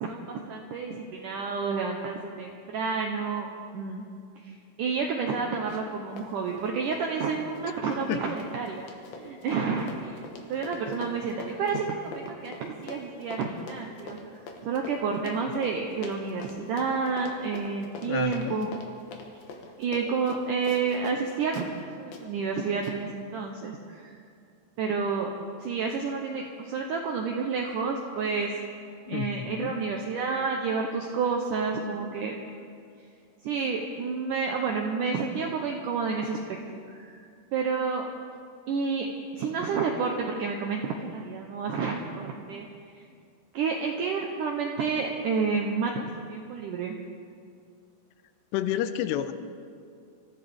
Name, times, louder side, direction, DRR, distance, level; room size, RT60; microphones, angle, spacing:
voice 1, 0.0-3.5 3.7-4.0 4.4-8.9 9.2-14.2 14.6-18.8 19.8-24.1 24.8-25.3 25.6-28.5 29.1-32.4 33.4-36.6 36.9-37.2 37.5-38.1 38.7-39.1 39.3-42.7 42.9-43.0 43.5-47.0, right 5 dB, 80° right, 2 dB, 1.8 m, -30 dB
Run, 5.7-5.9 6.2-21.2 21.5-21.7 22.1-22.2 22.8-23.0, left 3 dB, 65° left, 3.0 m, -44 dB
voice 2, 18.0-18.7 29.1-29.8 48.5-49.3, left 11 dB, 90° left, 10 dB, 2.8 m, -30 dB
25.0 x 14.5 x 3.5 m, 2.3 s
omnidirectional pair, 4.9 m